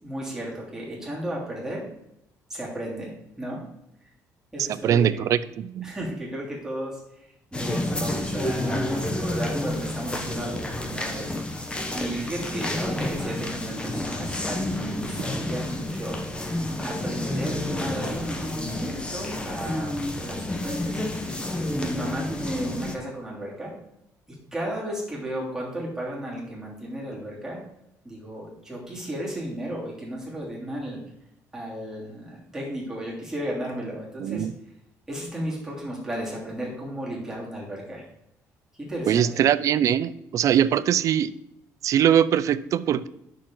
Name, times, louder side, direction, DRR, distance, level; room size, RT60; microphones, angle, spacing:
voice 1, 0.0-1.9 2.5-3.6 4.5-5.2 5.8-7.0 7.5-11.3 11.7-16.2 16.8-21.0 21.7-23.7 24.5-27.6 28.0-31.0 31.5-34.5 35.1-38.1 38.8-39.4, right 1 dB, 10° right, -5 dB, 3.1 m, -34 dB
voice 2, 4.7-5.9 34.2-34.5 39.1-41.3 41.8-43.1, right 9 dB, 55° right, 15 dB, 0.5 m, -22 dB
sound 1, 7.5-23.0, left 1 dB, 15° left, 1.0 m, -30 dB
10.0 x 6.6 x 3.9 m, 0.80 s
cardioid pair, 135°, 6 cm